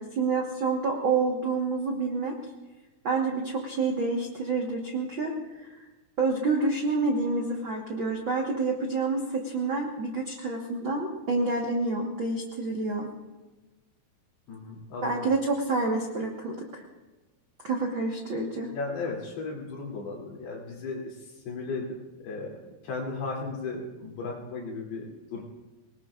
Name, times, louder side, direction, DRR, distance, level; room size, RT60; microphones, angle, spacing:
voice 1, 0.0-2.3 3.0-5.3 5.7-5.8 6.2-13.1 15.0-16.8 17.6-18.7, right 3 dB, 70° right, 0 dB, 1.1 m, -28 dB
voice 2, 14.5-15.2 18.6-21.9 22.2-25.4, left 3 dB, 75° left, -3 dB, 5.0 m, -36 dB
25.0 x 19.5 x 2.5 m, 1.1 s
omnidirectional pair, 4.6 m